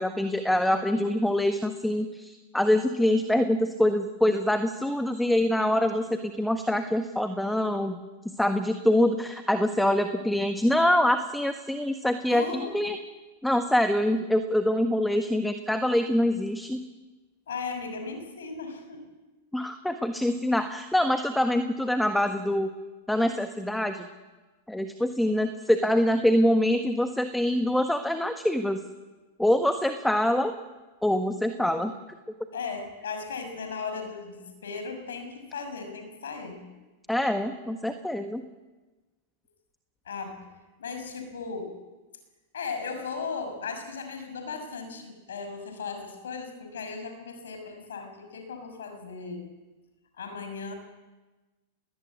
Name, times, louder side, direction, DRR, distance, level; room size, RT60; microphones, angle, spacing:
voice 1, 0.0-8.0 8.4-13.0 13.4-16.8 19.5-22.7 23.1-24.1 24.7-28.8 29.4-30.5 31.0-31.9 37.1-38.4, left 1 dB, 5° left, 8 dB, 1.5 m, -25 dB
voice 2, 12.3-12.7 17.5-19.1 32.5-36.6 40.1-40.4 40.8-41.8 42.5-49.4 50.2-50.7, left 5 dB, 80° left, 6 dB, 6.2 m, -36 dB
21.0 x 19.0 x 9.6 m, 1.2 s
hypercardioid pair, 110°, 0 cm